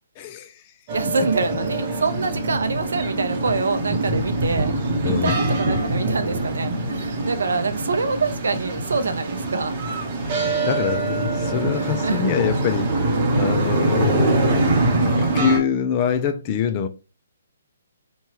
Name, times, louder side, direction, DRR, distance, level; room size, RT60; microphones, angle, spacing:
voice 1, 0.2-0.6 5.0-5.4 10.2-10.4 10.6-16.9, left 8 dB, 30° left, 0.4 m, -25 dB
sound 1, 0.9-15.6, right 2 dB, 30° right, 0.8 m, -23 dB
voice 2, 0.9-4.7 5.0-9.7 11.7-12.2, right 4 dB, 80° right, 0.5 m, -25 dB
2.9 x 2.3 x 2.9 m
hypercardioid pair, 160°, 0 cm